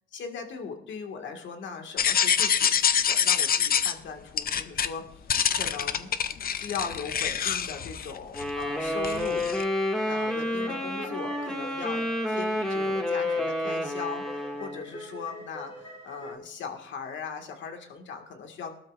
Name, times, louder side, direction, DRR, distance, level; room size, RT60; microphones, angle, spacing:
voice 1, 0.1-5.0 5.5-6.1 6.5-9.5 10.0-18.8, left 5 dB, 70° left, 4 dB, 1.9 m, -39 dB
sound 1, 2.0-3.9 4.4-4.9 5.3-8.6 9.0-9.6, left 8 dB, 50° left, 0.7 m, -26 dB
Wind instrument woodwind instrument, 8.3-14.8, left 1 dB, 5° left, 2.0 m, -29 dB
sound 2, 8.9-16.3, equal, 30° left, 2.6 m, -44 dB
18.0 x 12.5 x 2.5 m, 0.73 s
cardioid pair, 90°, 20 cm